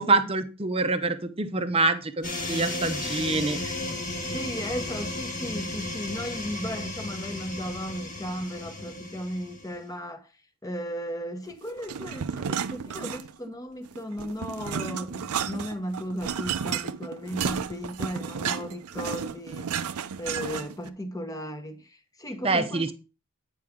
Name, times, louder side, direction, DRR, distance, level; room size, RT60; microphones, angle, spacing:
voice 1, 0.0-3.7 22.4-22.9, right 3 dB, 25° right, 0.7 m, -26 dB
sound 1, 2.2-9.8, left 2 dB, 35° left, 1.4 m, -34 dB
voice 2, 4.3-10.3 10.6-19.7 20.2-22.9, equal, 15° left, 0.9 m, -35 dB
sound 2, 11.8-13.5 13.9-20.9, right 7 dB, 90° right, 0.5 m, -32 dB
9.3 x 4.9 x 3.6 m
head